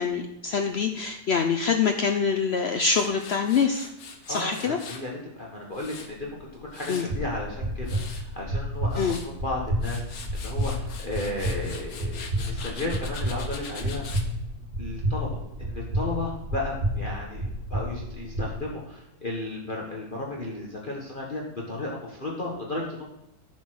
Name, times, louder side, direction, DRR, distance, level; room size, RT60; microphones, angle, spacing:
voice 1, 0.0-3.9 4.3-4.8 6.9-7.1 9.0-9.2, left 5 dB, 90° left, 5 dB, 0.5 m, -25 dB
Tools, 2.9-5.1 5.5-7.2 7.6-8.2 8.7-9.3 9.7-14.3, left 5 dB, 60° left, 1.4 m, -42 dB
voice 2, 4.3-9.1 9.4-14.2 14.8-17.4 17.7-23.1, left 2 dB, 30° left, -3 dB, 1.4 m, -34 dB
sound 1, 7.1-18.5, equal, 70° right, 3.1 m, -30 dB
9.2 x 5.5 x 6.2 m, 0.83 s
omnidirectional pair, 1.9 m